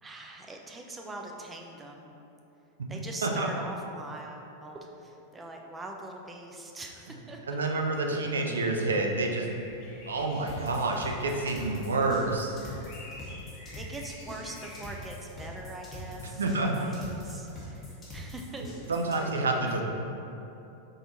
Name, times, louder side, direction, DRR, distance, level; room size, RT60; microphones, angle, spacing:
voice 1, 0.0-2.1 2.9-7.6 13.7-18.9 19.2-19.8, right 2 dB, 15° right, 1 dB, 0.5 m, -42 dB
voice 2, 7.5-9.5 10.1-12.5 16.4-16.9 18.9-19.8, right 2 dB, 70° right, 2 dB, 0.5 m, -28 dB
sound 1, 9.5-15.0, left 2 dB, 45° left, 0.9 m, -49 dB
sound 2, 10.5-19.2, left 1 dB, 20° left, 1.1 m, -44 dB
3.8 x 3.4 x 4.0 m, 2.9 s
figure-of-eight pair, 90°, 0 cm